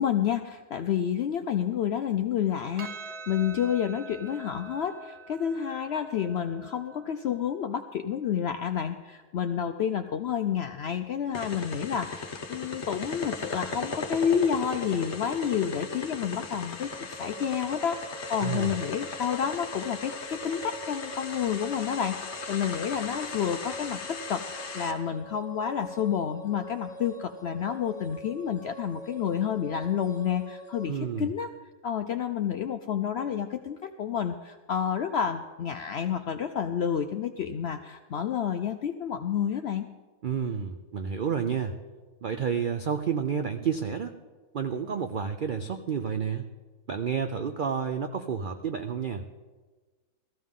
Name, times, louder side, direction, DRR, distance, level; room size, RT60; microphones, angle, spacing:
voice 1, 0.0-31.5 31.8-39.9, left 8 dB, 70° left, 7 dB, 0.6 m, -30 dB
Percussion, 2.8-7.4, right 3 dB, 55° right, 1.0 m, -45 dB
sound 1, 11.3-24.9, left 4 dB, 50° left, 1.2 m, -37 dB
sound 2, 16.9-30.9, right 2 dB, 30° left, 1.1 m, -44 dB
voice 2, 18.4-18.7 30.8-31.3 40.2-41.8 42.2-44.1 44.5-46.5 46.9-49.2, right 7 dB, 75° right, 7 dB, 0.4 m, -30 dB
17.0 x 14.0 x 3.7 m, 1.3 s
omnidirectional pair, 1.6 m